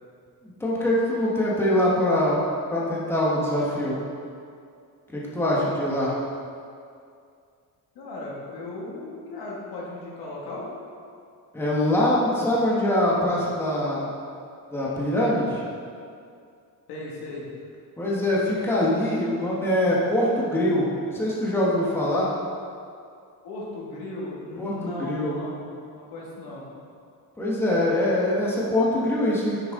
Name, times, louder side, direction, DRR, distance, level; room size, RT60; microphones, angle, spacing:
voice 1, 0.4-2.4 2.7-4.0 5.1-6.2 11.5-14.1 14.7-15.6 18.0-22.3 24.6-25.4 27.4-29.7, left 1 dB, 5° left, -6 dB, 1.3 m, -23 dB
voice 2, 8.0-10.7 16.9-17.5 23.4-25.7 26.0-26.7, left 2 dB, 85° left, -4 dB, 2.1 m, -36 dB
9.1 x 6.5 x 3.7 m, 2.3 s
cardioid pair, 165°, 37 cm